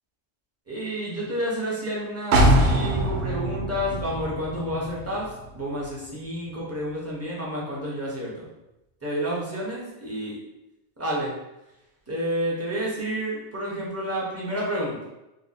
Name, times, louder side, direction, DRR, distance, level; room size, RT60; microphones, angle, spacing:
voice 1, 0.7-8.5 9.0-10.4 11.0-11.3 12.1-15.0, equal, 15° right, -6 dB, 0.7 m, -30 dB
sound 1, 2.3-6.1 6.4-6.5, right 1 dB, 75° right, 0.8 m, -23 dB
2.8 x 2.0 x 4.0 m, 0.94 s
omnidirectional pair, 1.2 m